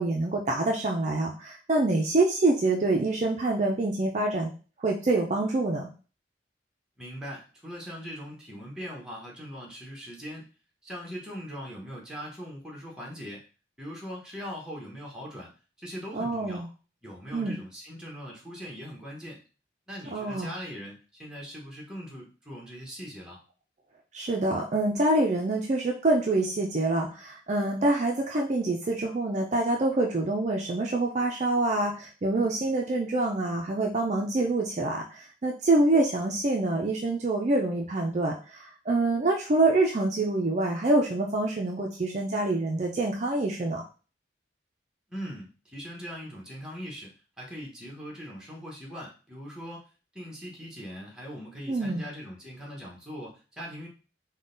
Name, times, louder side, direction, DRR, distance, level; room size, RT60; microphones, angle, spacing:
voice 1, 0.0-4.5 4.8-5.9 16.1-16.7 17.3-17.6 20.1-20.5 24.1-43.8 51.7-52.0, right 2 dB, 40° right, 0 dB, 0.4 m, -26 dB
voice 2, 7.0-10.5 10.8-13.4 13.8-15.5 15.8-16.6 17.0-19.4 19.9-23.4 45.1-49.8 50.1-53.9, equal, 5° right, -2 dB, 0.9 m, -41 dB
3.7 x 2.2 x 3.8 m, 0.35 s
head